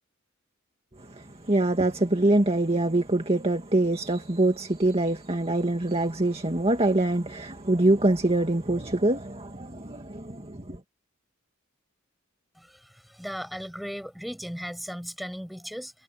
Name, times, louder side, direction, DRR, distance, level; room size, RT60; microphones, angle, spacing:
voice 1, 1.0-10.8, right 2 dB, 30° right, 2.1 m, -24 dB
voice 2, 12.6-15.9, equal, ahead, 7.4 m, -37 dB
head